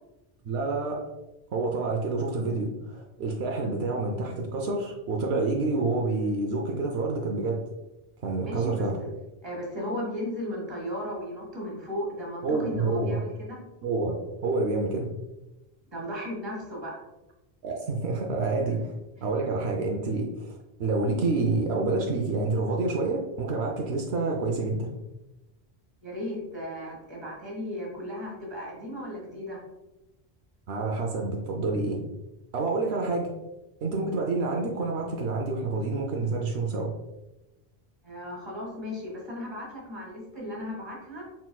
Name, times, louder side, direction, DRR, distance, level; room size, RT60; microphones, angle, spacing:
voice 1, 0.4-1.0 1.5-7.6 8.2-9.0 12.4-13.2 13.8-14.1 14.4-15.1 17.6-18.9 19.2-24.9 30.7-32.0 32.5-33.3 33.8-36.9, right 3 dB, 80° right, 1 dB, 0.9 m, -28 dB
voice 2, 8.5-9.1 9.4-13.6 15.9-17.0 26.0-29.6 38.0-41.3, left 1 dB, 25° right, -4 dB, 1.6 m, -36 dB
4.3 x 4.1 x 2.2 m, 0.97 s
omnidirectional pair, 1.1 m